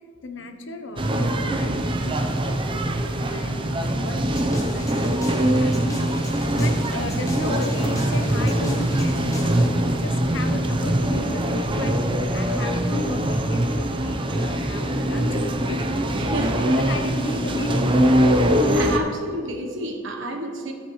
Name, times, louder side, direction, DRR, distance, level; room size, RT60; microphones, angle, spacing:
voice 1, 0.2-2.2 3.1-15.9 16.4-18.5, left 2 dB, 75° left, 6 dB, 0.9 m, -35 dB
sound 1, 1.0-19.0, right 1 dB, 25° right, 0.7 m, -22 dB
sound 2, 4.2-9.7, equal, 20° left, 1.3 m, -37 dB
voice 2, 16.1-16.6 18.7-20.7, right 2 dB, 85° right, 2 dB, 1.1 m, -30 dB
12.5 x 7.3 x 3.1 m, 2.2 s
head